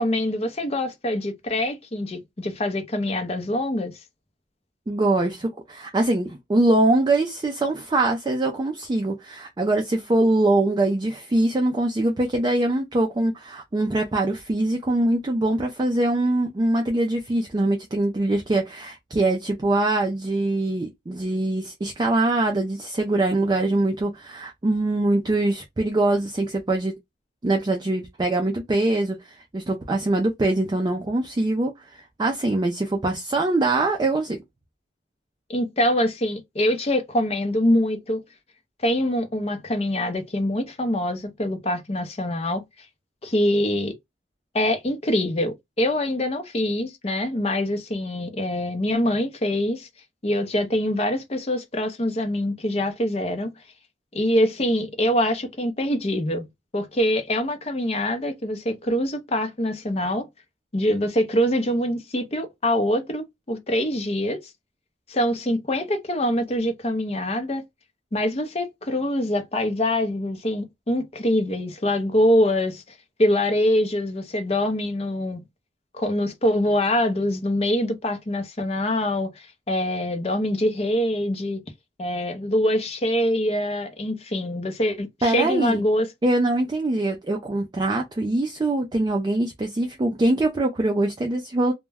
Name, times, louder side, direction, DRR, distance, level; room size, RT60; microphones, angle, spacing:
voice 1, 0.0-3.9 35.5-38.2 38.8-42.6 43.2-43.9 44.5-49.9 50.2-53.5 54.1-56.5 56.7-60.3 60.7-64.4 65.1-67.6 68.1-72.8 73.2-75.4 75.9-81.6 82.0-86.1, left 1 dB, 30° left, 0.6 m, -24 dB
voice 2, 4.9-26.9 27.4-34.4 85.2-85.8 86.2-91.7, right 2 dB, 20° right, 0.3 m, -23 dB
2.2 x 2.1 x 3.3 m
head